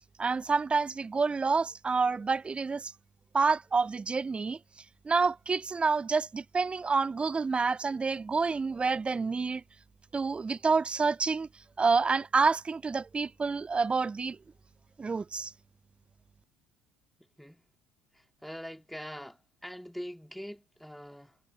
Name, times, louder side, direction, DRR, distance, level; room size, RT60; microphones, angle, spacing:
voice 1, 0.2-2.9 3.3-4.6 5.0-9.6 10.1-11.5 11.8-14.4 15.0-15.5, right 4 dB, 20° right, 0.4 m, -28 dB
voice 2, 18.1-21.4, equal, ahead, 3.7 m, -43 dB
figure-of-eight pair, 60°, 5 cm